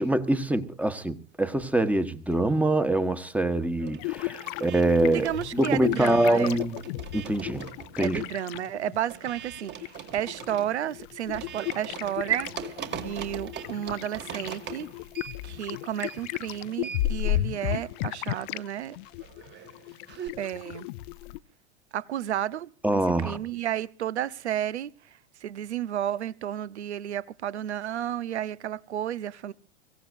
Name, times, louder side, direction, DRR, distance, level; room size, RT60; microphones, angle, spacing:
voice 1, 0.0-6.8 7.1-7.7 8.0-8.2 22.8-23.4, right 1 dB, 5° right, 1.3 m, -25 dB
sound 1, 1.5-2.7 3.0-20.3, right 8 dB, 30° right, 2.2 m, -43 dB
sound 2, 4.0-9.0 9.2-18.7 18.9-21.4, left 15 dB, 50° left, 0.7 m, -34 dB
voice 2, 5.1-6.6 8.0-14.9 15.4-19.0 20.4-20.9 21.9-24.9 25.4-29.5, right 11 dB, 80° right, 1.0 m, -32 dB
24.5 x 16.0 x 2.6 m
hypercardioid pair, 100°, 33 cm